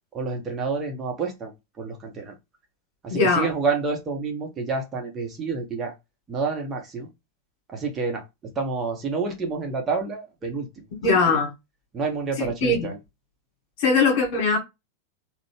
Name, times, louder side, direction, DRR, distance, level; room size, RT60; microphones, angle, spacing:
voice 1, 0.1-1.5 1.8-2.3 3.0-5.9 6.3-7.1 7.7-8.2 8.5-10.7 11.9-13.0, right 4 dB, 25° right, 1.3 m, -28 dB
voice 2, 3.1-3.5 11.0-11.5 12.4-12.9 13.8-14.6, left 4 dB, 45° left, 2.0 m, -21 dB
4.0 x 2.6 x 3.4 m
figure-of-eight pair, 90°, 0 cm